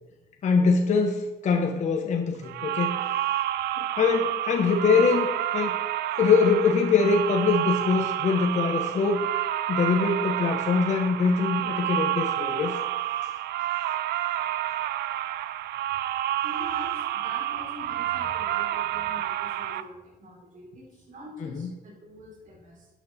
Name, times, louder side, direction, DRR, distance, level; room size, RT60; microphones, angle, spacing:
voice 1, 0.4-3.0 3.8-5.8 6.2-9.2 9.7-12.7 21.4-21.7, left 5 dB, 45° left, 2 dB, 1.2 m, -23 dB
sound 1, 2.4-19.8, right 12 dB, 75° right, 0.6 m, -29 dB
voice 2, 16.4-22.9, equal, 50° right, -3 dB, 4.3 m, -44 dB
12.5 x 9.4 x 4.4 m, 1.1 s
cardioid pair, 110°, 17 cm